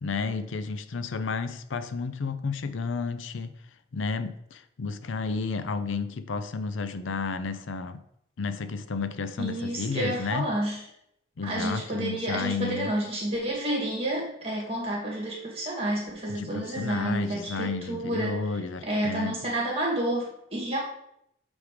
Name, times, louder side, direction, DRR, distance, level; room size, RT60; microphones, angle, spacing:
voice 1, 0.0-3.5 3.9-8.0 8.4-10.5 11.4-12.9 16.3-19.4, left 4 dB, 85° left, 0.5 m, -32 dB
voice 2, 9.4-10.8 11.4-18.4 18.8-20.8, right 1 dB, 30° right, 2.2 m, -30 dB
8.0 x 3.6 x 5.0 m
head